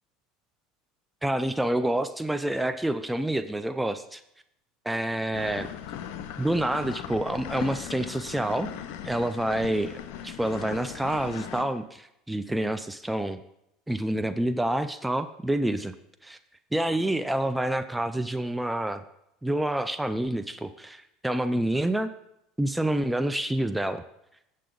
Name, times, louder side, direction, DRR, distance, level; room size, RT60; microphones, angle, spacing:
voice 1, 1.2-4.2 4.9-5.7 6.4-8.7 9.0-10.0 10.2-13.4 13.9-16.0 16.2-16.4 16.7-19.0 19.4-22.1 22.6-24.0, right 1 dB, 5° right, 10 dB, 0.3 m, -28 dB
sound 1, 5.3-11.6, left 10 dB, 70° left, 0.6 m, -39 dB
7.4 x 6.9 x 3.8 m, 0.82 s
supercardioid pair, 100°, 0 cm